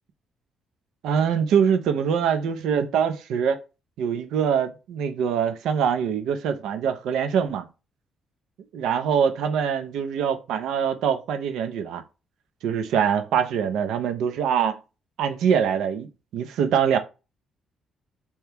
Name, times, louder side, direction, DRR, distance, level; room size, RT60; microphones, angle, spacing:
voice 1, 1.0-3.6 4.0-7.6 8.7-12.0 12.6-14.8 15.2-17.0, right 7 dB, 80° right, 0.5 m, -24 dB
2.9 x 2.2 x 3.3 m
cardioid pair, 160°, 0 cm